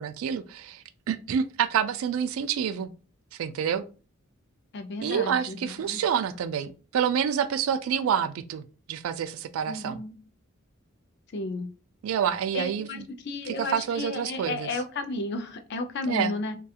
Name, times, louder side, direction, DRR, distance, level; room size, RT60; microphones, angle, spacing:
voice 1, 0.0-2.9 3.4-3.9 5.0-8.6 8.9-10.0 12.0-13.1 13.5-14.7 16.0-16.3, right 8 dB, 80° right, 0.3 m, -28 dB
voice 2, 4.7-6.0 9.7-10.1 11.3-11.7 12.5-16.6, left 2 dB, 55° left, 0.4 m, -33 dB
2.3 x 2.2 x 2.7 m
head